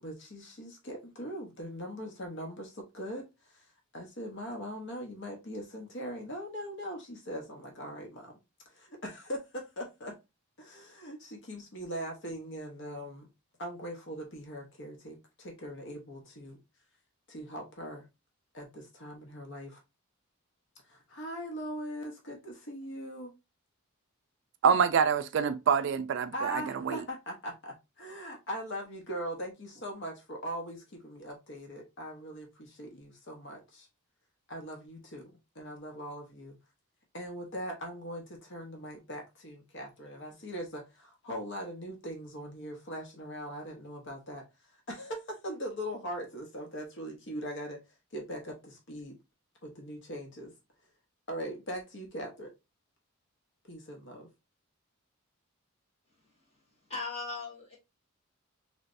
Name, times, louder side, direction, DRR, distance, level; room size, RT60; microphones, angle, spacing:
voice 1, 0.0-3.7 3.9-8.3 8.7-10.2 10.6-13.3 13.6-16.6 17.3-18.1 18.5-19.8 20.9-23.3 26.3-33.9 34.5-36.6 37.1-44.4 44.9-47.8 48.1-49.1 49.6-50.5 51.3-52.5 53.7-54.3, equal, 55° left, 0.9 m, -41 dB
voice 2, 24.6-27.0, right 6 dB, 55° right, 0.3 m, -26 dB
voice 3, 56.2-56.6 56.8-57.8, left 3 dB, 30° left, 1.9 m, -39 dB
3.2 x 3.1 x 2.5 m
head